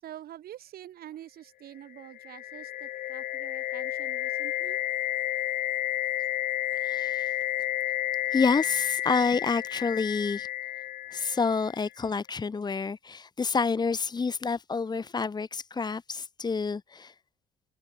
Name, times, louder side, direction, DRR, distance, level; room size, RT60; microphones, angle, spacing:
voice 1, 0.0-4.8, right 12 dB, 65° right, 7.4 m, -46 dB
sound 1, 2.0-11.8, left 14 dB, 55° left, 0.4 m, -31 dB
voice 2, 6.7-7.3 8.3-10.5 11.1-17.1, left 4 dB, 25° left, 2.1 m, -28 dB
cardioid pair, 110°, 17 cm